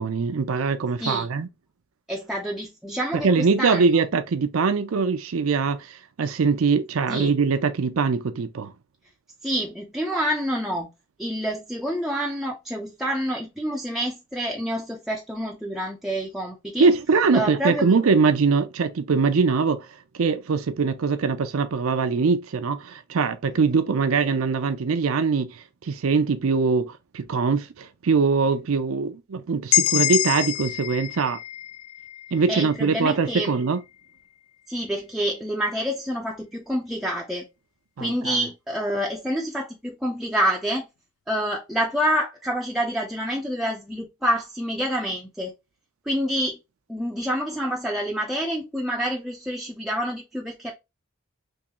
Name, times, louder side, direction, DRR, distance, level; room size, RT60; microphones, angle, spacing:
voice 1, 0.0-1.5 3.1-8.7 16.8-19.9 20.2-31.4 32.3-33.8 38.0-38.4, right 5 dB, 80° right, 0.5 m, -22 dB
voice 2, 2.1-3.9 7.1-7.3 9.4-10.9 11.2-16.9 17.3-17.9 32.5-33.5 34.7-37.5 38.0-40.9 41.3-45.5 46.1-46.6 46.9-50.7, equal, ahead, 0.4 m, -27 dB
sound 1, 29.7-33.5, left 14 dB, 90° left, 0.3 m, -26 dB
3.6 x 3.0 x 2.9 m
head